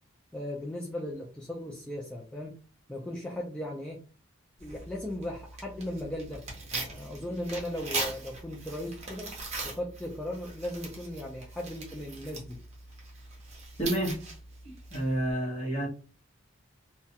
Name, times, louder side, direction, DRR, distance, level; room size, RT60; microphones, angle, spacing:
voice 1, 0.3-2.5 2.9-4.0 4.6-6.4 6.7-9.4 9.6-12.6, left 1 dB, 5° left, 0.3 m, -37 dB
Tearing, 4.6-15.3, right 3 dB, 35° right, 0.8 m, -40 dB
voice 2, 13.8-14.2 14.6-15.9, right 1 dB, 30° left, 1.0 m, -30 dB
2.3 x 2.2 x 2.7 m
head